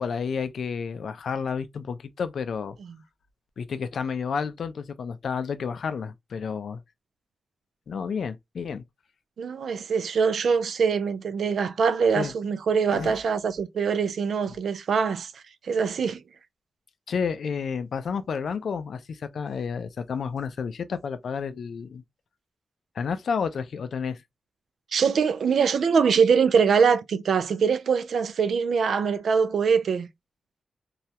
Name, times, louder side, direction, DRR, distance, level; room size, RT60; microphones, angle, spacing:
voice 1, 0.0-2.8 3.6-6.8 7.9-8.8 12.1-12.3 12.9-13.1 14.5-14.6 17.1-22.0 23.0-24.2, left 6 dB, 80° left, 0.4 m, -31 dB
voice 2, 9.4-15.3 15.7-16.2 24.9-30.1, right 6 dB, 80° right, 0.3 m, -23 dB
2.3 x 2.0 x 2.7 m
cardioid pair, 70°, 0 cm